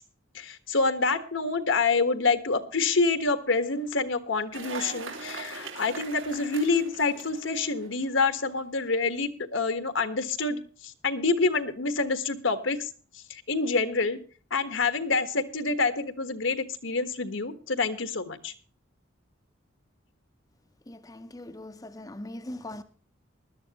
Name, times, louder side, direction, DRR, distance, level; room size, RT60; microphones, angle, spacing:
voice 1, 0.3-10.6 11.0-12.9 13.5-14.2 14.5-18.5, left 3 dB, 80° left, 1.4 m, -27 dB
Cheering / Applause, 4.5-8.2, right 4 dB, 85° right, 3.4 m, -41 dB
voice 2, 20.9-22.8, left 1 dB, 20° left, 0.6 m, -40 dB
20.0 x 12.0 x 2.9 m
head